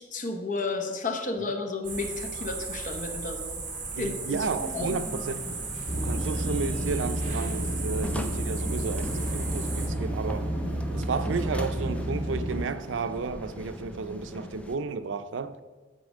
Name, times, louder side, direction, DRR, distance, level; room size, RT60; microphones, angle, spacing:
voice 1, 0.0-3.6 4.0-4.4 4.7-4.9, left 3 dB, 45° left, 1.0 m, -32 dB
sound 1, 1.8-9.9, right 4 dB, 45° right, 1.9 m, -36 dB
voice 2, 3.9-5.6 6.0-10.5 10.9-15.6, right 4 dB, 90° right, 0.5 m, -33 dB
sound 2, 4.3-14.8, equal, 5° left, 0.5 m, -41 dB
sound 3, 5.9-12.6, right 1 dB, 65° right, 1.8 m, -31 dB
8.3 x 4.3 x 6.3 m
head